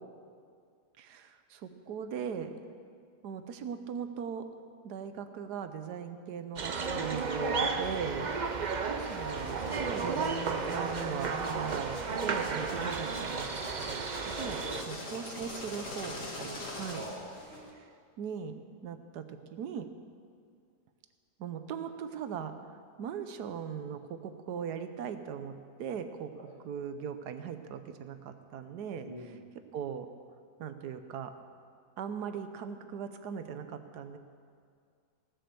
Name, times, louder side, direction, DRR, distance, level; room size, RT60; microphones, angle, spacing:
voice 1, 1.0-2.6 3.2-4.5 4.8-8.3 9.0-13.5 13.8-17.0 17.8-17.9 18.2-19.9 21.4-22.5 23.0-25.5 25.8-29.1 29.7-30.1 30.6-31.3 32.0-34.2, right 7 dB, 75° right, 9 dB, 1.4 m, -39 dB
sound 1, 6.6-14.8, right 4 dB, 55° right, 0.4 m, -33 dB
voice 2, 7.3-8.2 9.9-10.1 12.7-12.8 14.3-14.9 16.9-17.3 26.4-26.5 29.1-29.4, equal, 35° left, -4 dB, 2.7 m, -41 dB
sound 2, 9.0-17.7, left 2 dB, 50° left, 2.3 m, -44 dB
17.5 x 7.6 x 6.9 m, 2.2 s
omnidirectional pair, 1.8 m